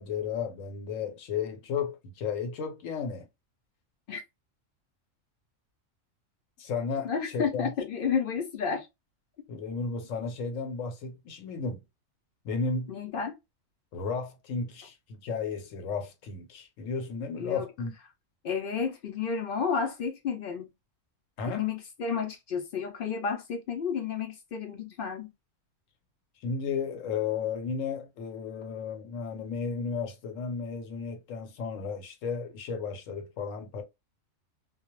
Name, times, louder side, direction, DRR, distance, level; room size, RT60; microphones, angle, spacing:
voice 1, 0.0-3.3 6.6-7.7 9.5-11.8 12.4-12.9 13.9-17.9 21.4-21.6 26.4-33.8, left 5 dB, 80° left, 1.0 m, -33 dB
voice 2, 7.0-8.9 12.9-13.3 17.4-17.6 18.4-20.7 21.5-25.3, left 6 dB, 65° left, 0.5 m, -31 dB
2.2 x 2.0 x 2.9 m
omnidirectional pair, 1.3 m